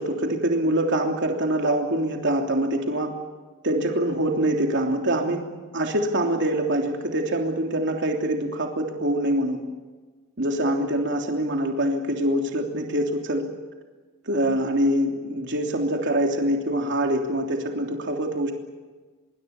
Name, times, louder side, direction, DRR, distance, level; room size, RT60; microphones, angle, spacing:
voice 1, 0.0-3.1 3.6-5.4 5.7-9.6 10.4-13.4 14.3-18.5, right 1 dB, 55° right, 2 dB, 3.2 m, -24 dB
25.5 x 23.0 x 7.2 m, 1.3 s
head